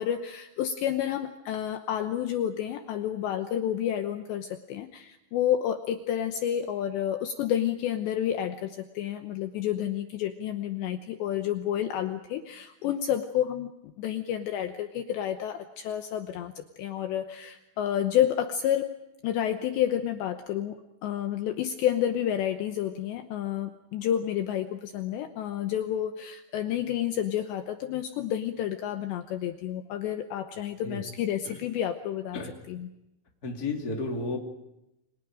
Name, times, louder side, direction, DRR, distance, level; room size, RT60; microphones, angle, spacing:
voice 1, 0.0-19.0 19.2-20.8 21.0-32.4 32.7-32.9, left 10 dB, 75° left, 7 dB, 2.9 m, -30 dB
voice 2, 33.4-34.4, left 3 dB, 25° left, 2 dB, 2.8 m, -32 dB
29.5 x 25.0 x 5.0 m, 0.90 s
omnidirectional pair, 5.8 m